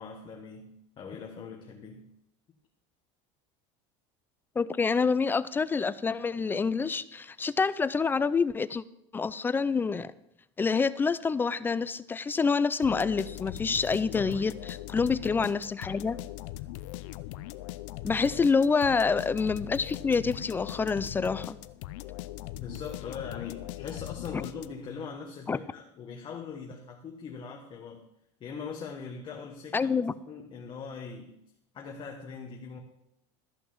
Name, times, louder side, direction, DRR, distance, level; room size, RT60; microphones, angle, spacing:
voice 1, 0.0-2.1 13.9-14.3 22.6-28.0 28.4-29.9 30.3-31.4 31.7-32.8, left 5 dB, 30° left, 2 dB, 1.3 m, -41 dB
voice 2, 4.6-8.8 9.1-10.1 10.6-16.2 18.0-21.6 25.5-25.6 29.7-30.1, left 5 dB, 15° left, 16 dB, 0.3 m, -27 dB
sound 1, 12.8-25.0, left 15 dB, 75° left, 0.7 m, -40 dB
13.0 x 5.9 x 7.2 m, 0.81 s
supercardioid pair, 145°, 16 cm